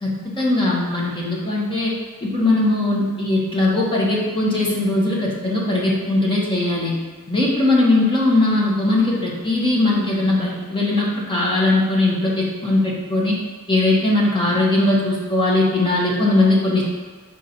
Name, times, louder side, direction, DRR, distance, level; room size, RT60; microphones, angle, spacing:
voice 1, 0.0-1.9 2.2-6.9 7.3-13.4 13.7-16.8, left 2 dB, 20° left, -4 dB, 1.1 m, -19 dB
5.5 x 4.1 x 4.3 m, 1.4 s
head